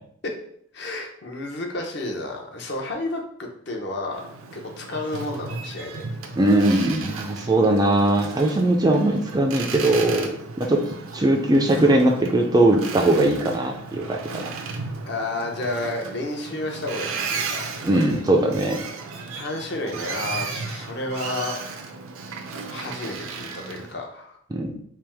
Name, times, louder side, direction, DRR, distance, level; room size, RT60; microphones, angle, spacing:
voice 1, 0.7-4.2 4.5-6.1 8.8-9.0 15.1-17.6 19.3-21.9 22.7-24.4, left 2 dB, 55° left, 1 dB, 0.7 m, -31 dB
Boat Water vehicle, 4.1-23.9, right 4 dB, 80° right, 0.5 m, -35 dB
voice 2, 6.4-10.3 10.6-10.9 11.1-14.5 17.8-18.8 24.5-24.8, right 1 dB, 20° right, 2 dB, 0.3 m, -20 dB
3.4 x 3.0 x 3.3 m, 0.67 s
head